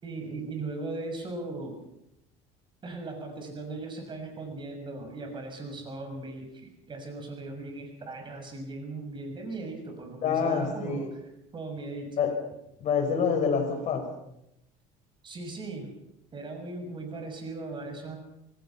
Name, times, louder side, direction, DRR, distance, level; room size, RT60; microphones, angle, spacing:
voice 1, 0.0-1.8 2.8-11.0 11.5-12.2 15.2-15.9 16.3-18.2, right 3 dB, 30° right, 4 dB, 6.7 m, -38 dB
voice 2, 10.2-11.1 12.2-12.4 12.8-14.1, left 6 dB, 45° left, 5 dB, 5.5 m, -26 dB
27.0 x 18.5 x 5.9 m, 0.82 s
cardioid pair, 130°, 16 cm